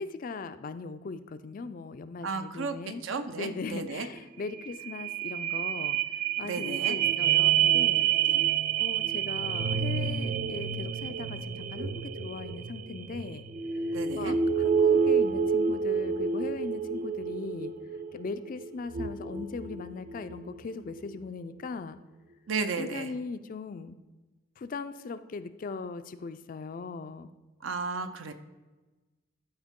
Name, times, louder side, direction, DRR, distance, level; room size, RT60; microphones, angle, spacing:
voice 1, 0.0-3.0 3.4-6.0 6.4-8.1 8.8-13.4 13.9-17.7 18.1-22.0 22.8-24.0 24.6-27.3, left 4 dB, 45° left, 12 dB, 0.4 m, -39 dB
voice 2, 2.2-2.8 3.0-4.1 6.4-7.0 8.3-8.4 13.9-14.3 22.5-23.1 27.6-28.3, right 4 dB, 75° right, 8 dB, 0.7 m, -33 dB
sound 1, 4.2-4.3 4.5-20.5 21.0-21.1, right 7 dB, 45° right, 0.3 m, -28 dB
12.0 x 4.5 x 3.6 m, 1.2 s
head